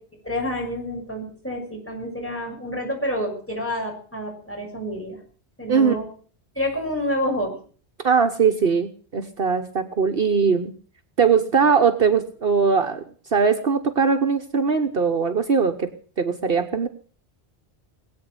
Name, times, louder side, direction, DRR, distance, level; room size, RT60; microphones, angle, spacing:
voice 1, 0.2-5.2 5.6-6.1 6.5-7.6, equal, 10° left, 1 dB, 6.5 m, -28 dB
voice 2, 8.0-10.7 11.2-13.0 13.3-15.9 16.2-16.9, right 5 dB, 60° right, 7 dB, 1.3 m, -20 dB
20.5 x 8.8 x 7.9 m, 0.44 s
omnidirectional pair, 1.1 m